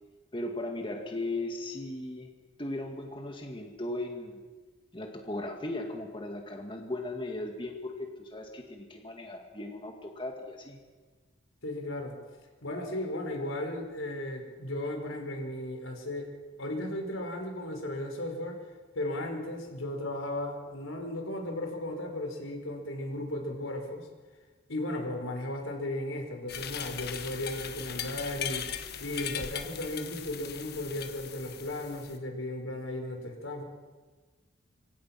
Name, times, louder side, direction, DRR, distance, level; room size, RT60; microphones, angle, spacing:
voice 1, 0.3-2.3 2.6-4.4 4.9-10.8, left 2 dB, 25° left, 3 dB, 2.3 m, -37 dB
voice 2, 11.6-12.1 12.6-16.3 16.6-18.6 18.9-24.1 24.7-28.7 29.0-33.6, left 1 dB, 90° left, 3 dB, 5.0 m, -35 dB
sound 1, 26.5-32.2, left 8 dB, 50° left, 1.5 m, -39 dB
25.5 x 25.5 x 6.0 m, 1.4 s
head